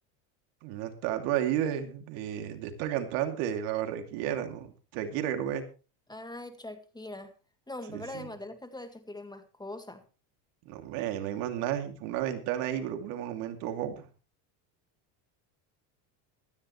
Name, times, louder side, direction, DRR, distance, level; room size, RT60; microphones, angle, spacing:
voice 1, 0.6-5.6 7.9-8.3 10.6-14.1, right 10 dB, 75° right, 2.8 m, -32 dB
voice 2, 6.1-7.3 7.7-10.0, left 2 dB, 10° left, 1.8 m, -42 dB
16.0 x 14.0 x 3.2 m
supercardioid pair, 100°, 49 cm